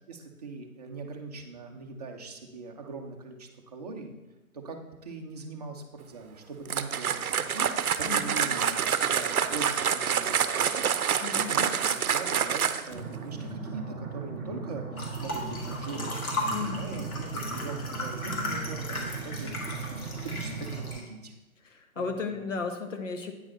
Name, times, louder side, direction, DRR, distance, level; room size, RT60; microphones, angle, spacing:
voice 1, 0.0-4.1 4.5-7.7 8.0-11.1 11.4-21.3 22.0-22.4, right 3 dB, 30° right, 2 dB, 0.7 m, -41 dB
sound 1, 6.6-13.0, right 7 dB, 85° right, 0.7 m, -27 dB
voice 2, 8.0-8.4 11.2-11.6 16.5-16.9 21.6-23.3, left 5 dB, 60° left, 6 dB, 1.2 m, -34 dB
sound 2, 12.9-20.9, right 4 dB, ahead, 1.1 m, -38 dB
sound 3, 15.0-21.0, left 1 dB, 80° left, 2.1 m, -36 dB
8.9 x 4.7 x 4.2 m, 1.1 s
hypercardioid pair, 155°, 43 cm